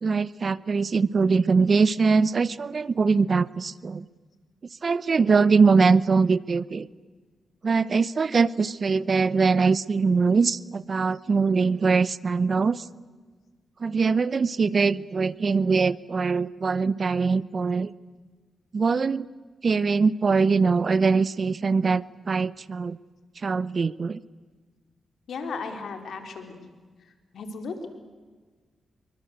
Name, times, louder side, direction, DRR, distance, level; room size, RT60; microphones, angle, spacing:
voice 1, 0.0-4.0 4.8-6.9 7.6-12.8 13.8-17.9 18.7-19.3 19.6-23.0 23.4-24.2, right 4 dB, 50° right, 19 dB, 0.8 m, -22 dB
voice 2, 25.3-26.6 27.3-27.9, left 4 dB, 75° left, 6 dB, 3.9 m, -35 dB
26.5 x 23.5 x 8.1 m, 1.4 s
cardioid pair, 60°, 0 cm